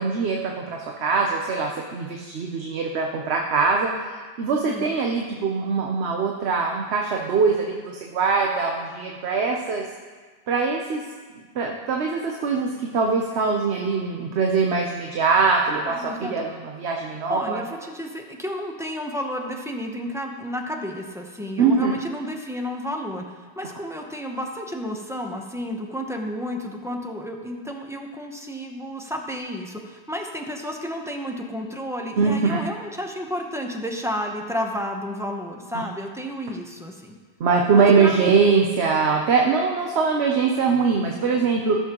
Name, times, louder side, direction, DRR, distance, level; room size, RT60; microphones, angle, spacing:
voice 1, 0.0-3.9 4.4-9.8 10.5-11.0 11.5-17.6 21.6-21.9 32.2-32.6 35.7-35.8 37.4-41.8, right 5 dB, 90° right, 1 dB, 1.1 m, -22 dB
voice 2, 15.8-16.3 17.3-37.2 37.8-38.4, equal, 5° right, 1 dB, 0.7 m, -31 dB
15.0 x 7.1 x 3.0 m, 1.4 s
omnidirectional pair, 1.1 m